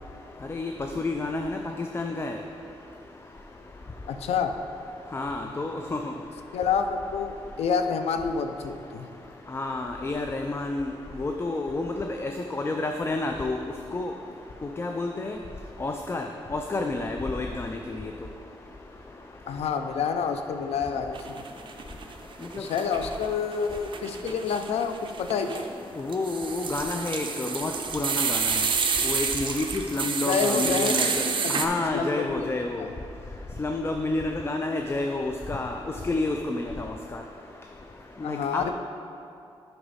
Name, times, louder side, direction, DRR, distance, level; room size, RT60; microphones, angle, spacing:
voice 1, 1.0-1.6 1.9-2.4 5.1-6.1 9.5-10.9 11.2-13.6 13.9-14.1 14.8-15.4 15.8-16.2 16.5-18.1 26.0-28.6 29.0-31.1 31.5-32.8 33.6-35.8 36.0-37.2 38.2-38.6, left 2 dB, 25° left, 4 dB, 0.4 m, -29 dB
voice 2, 4.1-4.5 6.5-9.1 19.5-21.4 22.5-25.6 30.2-31.6 31.9-32.5 32.8-32.9 38.2-38.7, left 6 dB, 90° left, 7 dB, 0.5 m, -28 dB
sound 1, 21.1-22.1 22.4-31.7, right 5 dB, 50° right, 0.6 m, -29 dB
7.7 x 5.9 x 4.1 m, 2.5 s
cardioid pair, 100°, 10 cm